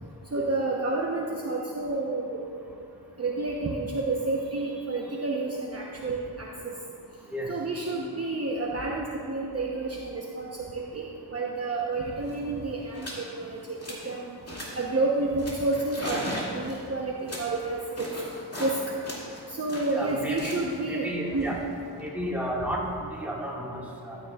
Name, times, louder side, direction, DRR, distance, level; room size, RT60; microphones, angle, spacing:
voice 1, 0.3-2.4 3.2-6.8 7.5-13.8 14.0-14.4 14.8-16.2 16.5-18.1 18.6-18.8 19.5-21.6, right 2 dB, 35° right, -2 dB, 0.8 m, -30 dB
sound 1, 11.9-12.0 12.2-12.5 12.9-13.3 13.6-14.1 14.5-14.9 15.4-18.8 19.0-22.1, equal, 35° left, 2.1 m, -38 dB
voice 2, 19.9-20.6 20.9-21.6 21.9-24.2, equal, 5° right, -4 dB, 1.6 m, -32 dB
13.0 x 9.3 x 2.3 m, 2.5 s
wide cardioid pair, 85°, 41 cm